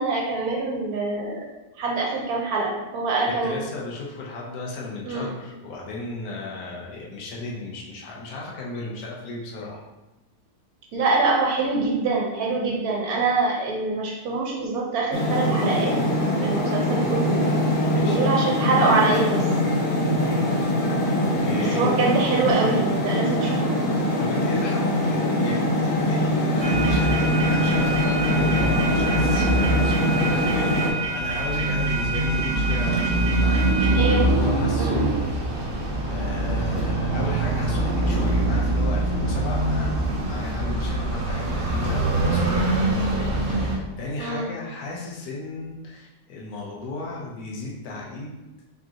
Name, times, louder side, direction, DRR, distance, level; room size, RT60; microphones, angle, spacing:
voice 1, 0.0-1.4 1.8-3.6 5.0-5.3 10.9-16.0 16.4-17.4 18.0-19.5 21.6-23.5 34.0-34.3 34.8-35.0 44.2-44.5, right 3 dB, 70° right, -2 dB, 1.3 m, -24 dB
voice 2, 3.4-9.8 17.9-18.2 21.1-21.9 24.2-35.5 36.0-48.3, left 2 dB, 70° left, -3 dB, 1.3 m, -35 dB
sound 1, 15.1-30.9, left 1 dB, 50° left, 0.6 m, -23 dB
short train close, 26.6-43.8, right 2 dB, 50° right, 0.7 m, -24 dB
5.0 x 3.7 x 2.8 m, 1.0 s
omnidirectional pair, 1.7 m